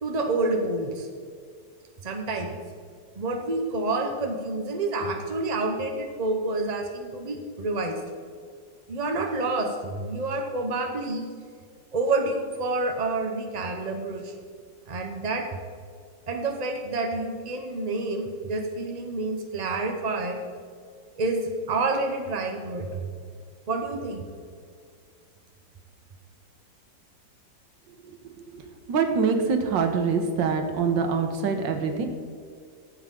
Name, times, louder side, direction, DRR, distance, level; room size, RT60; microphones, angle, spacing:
voice 1, 0.0-1.1 2.0-2.6 3.2-8.0 8.9-11.3 11.9-14.3 14.9-15.5 16.3-20.4 21.2-23.1 23.7-24.3, right 2 dB, 50° right, 3 dB, 0.5 m, -28 dB
voice 2, 28.9-32.1, right 5 dB, 75° right, 5 dB, 1.8 m, -24 dB
14.0 x 8.1 x 3.7 m, 2.1 s
omnidirectional pair, 2.0 m